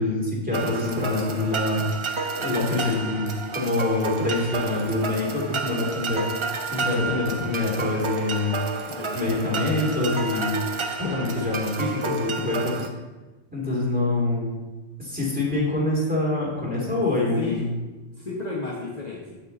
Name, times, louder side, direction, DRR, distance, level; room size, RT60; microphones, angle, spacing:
voice 1, 0.0-1.9 2.3-6.3 6.7-10.6 11.0-12.9 13.5-14.5 15.0-17.6, left 2 dB, 5° right, -5 dB, 2.3 m, -25 dB
sound 1, 0.5-12.9, right 4 dB, 40° right, 0.5 m, -31 dB
voice 2, 2.6-2.9 8.9-9.8 10.1-10.7 17.4-17.6 18.2-19.4, left 3 dB, 40° left, -4 dB, 1.1 m, -34 dB
7.8 x 6.4 x 3.9 m, 1.2 s
omnidirectional pair, 1.2 m